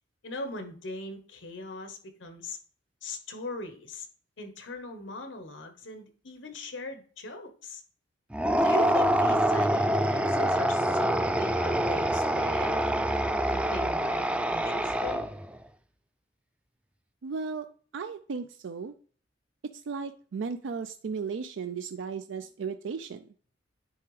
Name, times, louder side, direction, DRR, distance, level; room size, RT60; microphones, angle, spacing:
voice 1, 0.2-2.6 3.0-4.1 4.4-7.8 8.6-12.8 13.4-15.3, left 2 dB, 90° left, 7 dB, 1.1 m, -40 dB
sound 1, 8.3-15.5, right 1 dB, 5° right, 0.3 m, -26 dB
voice 2, 17.2-17.7 17.9-18.9 19.9-23.3, right 5 dB, 90° right, 9 dB, 0.4 m, -35 dB
9.9 x 3.4 x 3.2 m, 0.42 s
head